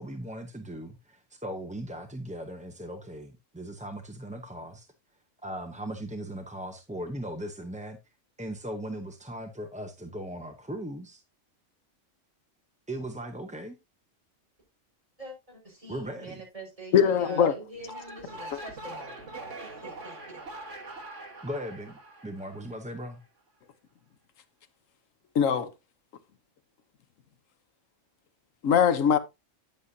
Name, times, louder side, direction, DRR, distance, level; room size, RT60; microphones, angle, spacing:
voice 1, 0.0-4.9 5.4-8.0 8.4-11.2 12.9-13.8 15.9-16.4 21.4-21.9 22.2-23.2, right 1 dB, 10° right, 0.6 m, -38 dB
voice 2, 15.2-19.3 19.6-20.4, right 1 dB, 25° right, 4.9 m, -45 dB
voice 3, 16.9-17.5 25.3-25.7 28.6-29.2, left 8 dB, 90° left, 1.2 m, -21 dB
sound 1, 17.7-23.1, right 2 dB, 65° right, 2.0 m, -43 dB
9.6 x 8.4 x 2.7 m
omnidirectional pair, 1.3 m